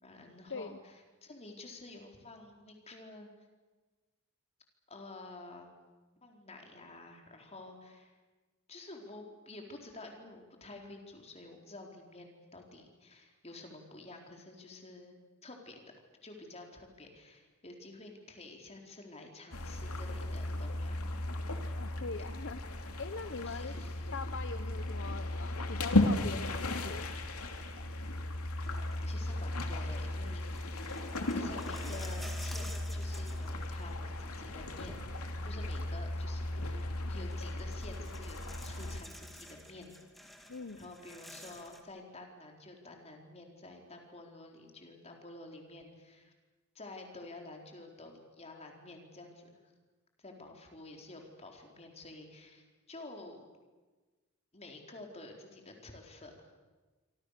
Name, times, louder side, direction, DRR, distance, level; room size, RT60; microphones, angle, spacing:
voice 1, 0.0-3.3 4.9-5.7 6.2-8.1 8.7-15.2 15.4-15.9 16.2-21.0 22.2-22.3 23.4-23.9 29.0-30.8 31.3-40.3 40.8-46.3 46.7-49.5 50.2-53.4 54.5-56.5, left 2 dB, 30° left, 2 dB, 4.5 m, -50 dB
sound 1, 19.5-39.0, left 1 dB, 85° left, 2.7 m, -36 dB
voice 2, 21.8-23.7 24.1-27.1 40.5-40.9, left 4 dB, 60° left, 10 dB, 0.9 m, -42 dB
sound 2, 28.6-29.3 29.8-29.9 30.5-34.1 34.4-35.6 36.8-36.9 37.1-41.8, equal, ahead, 2.6 m, -51 dB
27.0 x 26.0 x 6.8 m, 1.3 s
head